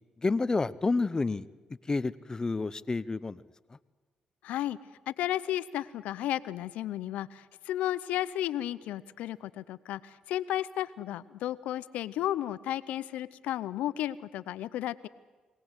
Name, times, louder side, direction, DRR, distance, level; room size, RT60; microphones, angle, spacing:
voice 1, 0.2-1.5 1.9-3.4, left 3 dB, 30° left, 17 dB, 0.8 m, -29 dB
voice 2, 4.4-4.8 5.1-15.1, left 13 dB, 85° left, 16 dB, 0.6 m, -33 dB
22.5 x 18.0 x 8.1 m, 1.3 s
supercardioid pair, 65°, 2 cm